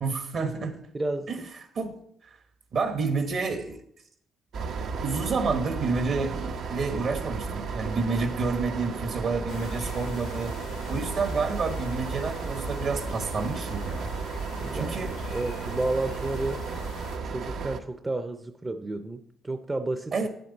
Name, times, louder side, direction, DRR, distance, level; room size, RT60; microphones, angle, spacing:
voice 1, 0.0-0.8 1.3-1.4 1.7-1.9 2.7-3.8 5.0-10.5 10.9-14.1 14.7-15.1 20.1-20.3, right 4 dB, 60° right, 7 dB, 1.3 m, -29 dB
voice 2, 0.9-1.5 14.6-16.7 17.2-20.1, right 2 dB, 20° right, 9 dB, 0.5 m, -31 dB
sound 1, 4.5-17.8, right 5 dB, 75° right, 0.8 m, -34 dB
sound 2, 9.5-17.2, left 7 dB, 80° left, 0.7 m, -43 dB
9.0 x 7.7 x 4.0 m, 0.71 s
cardioid pair, 90°, 0 cm